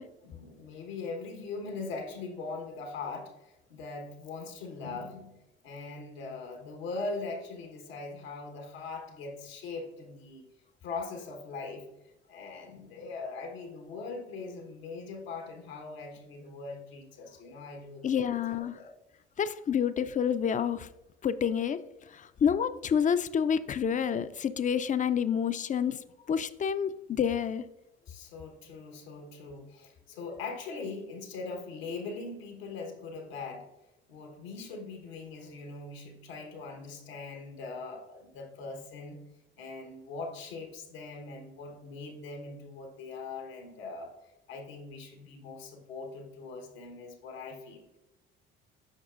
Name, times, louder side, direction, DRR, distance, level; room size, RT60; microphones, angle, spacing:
voice 1, 0.2-10.4 10.8-11.9 12.3-18.9 28.1-33.7 34.1-39.2 39.6-47.9, left 3 dB, 85° left, 2 dB, 1.2 m, -41 dB
voice 2, 18.0-18.8 19.4-20.9 21.2-21.8 22.1-26.0 26.3-27.7, left 7 dB, 25° left, 13 dB, 0.4 m, -28 dB
8.0 x 5.9 x 2.4 m, 0.95 s
hypercardioid pair, 60°, 30 cm